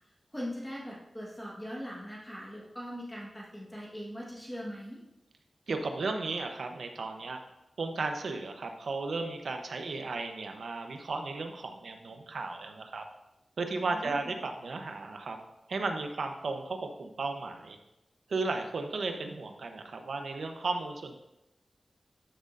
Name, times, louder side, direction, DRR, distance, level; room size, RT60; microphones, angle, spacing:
voice 1, 0.3-5.0 13.9-14.3, equal, 10° left, -5 dB, 1.5 m, -41 dB
voice 2, 5.7-7.4 7.8-13.0 13.6-15.4 15.7-17.8 18.3-21.2, right 3 dB, 85° right, 5 dB, 0.8 m, -35 dB
12.5 x 6.5 x 2.6 m, 0.91 s
wide cardioid pair, 120°, 0 cm